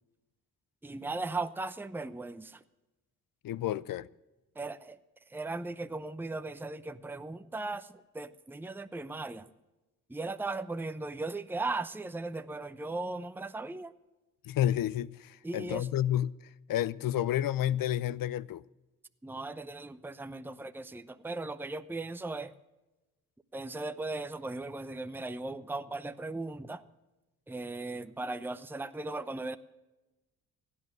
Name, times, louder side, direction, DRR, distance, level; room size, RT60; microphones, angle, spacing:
voice 1, 0.8-2.6 4.6-5.0 5.3-9.5 10.1-13.9 15.4-15.9 19.2-22.5 23.5-26.8 27.5-29.6, right 2 dB, 5° right, 0.7 m, -37 dB
voice 2, 3.4-4.1 14.4-16.3 16.7-18.6, left 12 dB, 60° left, 0.6 m, -30 dB
16.0 x 9.6 x 7.7 m
supercardioid pair, 55°, 38 cm